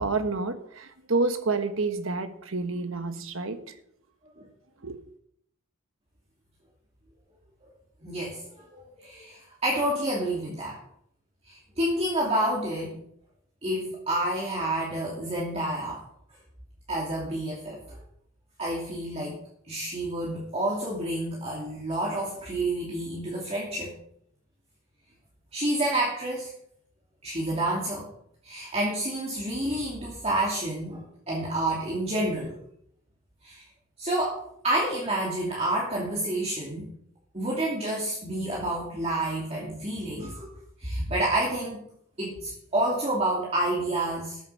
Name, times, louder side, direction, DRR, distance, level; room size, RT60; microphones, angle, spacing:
voice 1, 0.0-3.6 4.8-5.0, right 3 dB, 70° right, 1.3 m, -29 dB
voice 2, 8.0-10.8 11.4-13.0 13.6-16.0 16.9-18.0 18.6-19.4 19.7-23.9 25.5-26.5 27.2-28.1 28.4-32.6 33.4-33.6 34.0-36.9 37.3-40.5 40.8-41.9 42.2-44.4, right 1 dB, 30° right, 2.8 m, -29 dB
13.5 x 8.2 x 6.3 m
head